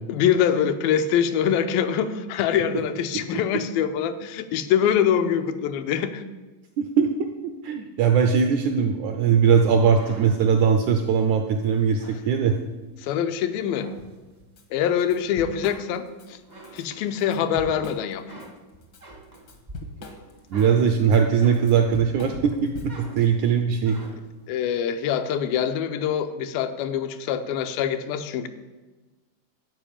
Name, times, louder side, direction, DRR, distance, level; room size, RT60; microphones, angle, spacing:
voice 1, 0.1-6.2 13.0-13.9 14.7-16.4 16.7-18.2 24.5-28.5, left 8 dB, 85° left, 9 dB, 2.4 m, -24 dB
voice 2, 6.8-7.1 7.4-12.6 20.5-24.0, right 6 dB, 80° right, 6 dB, 1.7 m, -20 dB
sound 1, 9.6-13.0 13.5-14.6 15.1-16.1 16.4-17.6 18.0-22.0 22.4-24.4, right 1 dB, 50° right, 0.5 m, -46 dB
Drum kit / Drum, 14.6-14.7 15.0-16.3 16.6-16.8 17.2-18.5 18.8-23.2, left 2 dB, 70° left, 1.0 m, -40 dB
12.5 x 4.9 x 8.7 m, 1.2 s
omnidirectional pair, 4.1 m